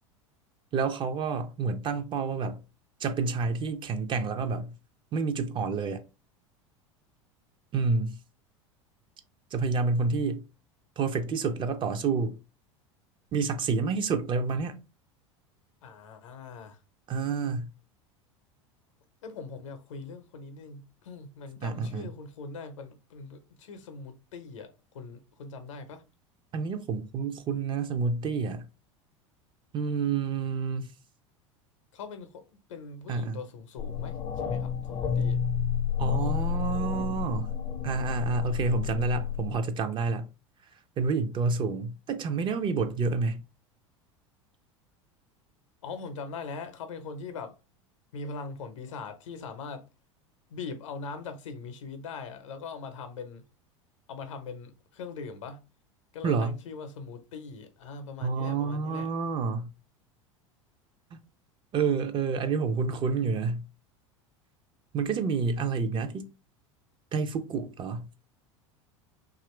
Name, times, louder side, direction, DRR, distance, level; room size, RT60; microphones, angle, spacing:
voice 1, 0.7-2.6 3.0-4.7 5.1-6.0 7.7-8.2 9.5-10.4 11.0-12.4 13.3-14.8 17.1-17.7 21.6-22.1 26.5-28.6 29.7-30.9 33.1-33.4 36.0-37.5 37.8-40.3 41.0-43.4 56.2-56.6 58.2-59.7 61.1-61.2 61.7-63.6 64.9-66.3 67.1-68.1, right 4 dB, 30° right, 0.5 m, -29 dB
voice 2, 15.8-16.8 19.2-26.0 31.9-35.4 45.8-47.6 48.1-49.9 50.5-53.4 54.1-55.6 56.1-59.1, left 4 dB, 70° left, 0.6 m, -41 dB
sound 1, 33.8-39.6, left 8 dB, 30° left, 0.5 m, -30 dB
2.8 x 2.5 x 3.1 m
figure-of-eight pair, 80°, 16 cm